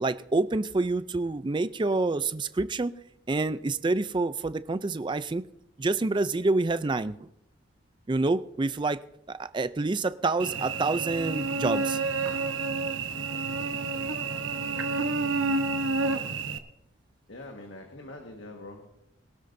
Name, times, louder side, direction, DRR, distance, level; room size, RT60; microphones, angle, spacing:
voice 1, 0.0-2.9 3.3-5.4 5.8-7.2 8.1-9.0 9.4-12.0, right 3 dB, 25° right, 14 dB, 0.4 m, -27 dB
Cricket / Buzz, 10.4-16.6, right 3 dB, 80° right, 1.0 m, -29 dB
voice 2, 17.3-18.9, left 2 dB, 70° left, 2 dB, 1.6 m, -44 dB
22.0 x 13.0 x 2.7 m, 0.80 s
head